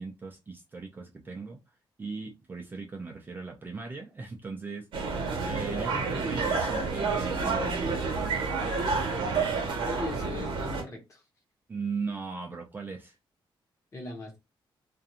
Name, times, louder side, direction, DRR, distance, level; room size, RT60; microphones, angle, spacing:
voice 1, 0.0-1.6 2.0-8.1 11.7-13.2, right 4 dB, 20° right, 0.4 m, -38 dB
sound 1, 4.9-10.8, right 4 dB, 65° right, 0.8 m, -29 dB
voice 2, 9.9-11.2 13.9-14.4, left 3 dB, 35° left, 1.1 m, -39 dB
2.5 x 2.2 x 2.8 m
wide cardioid pair, 150°, 9 cm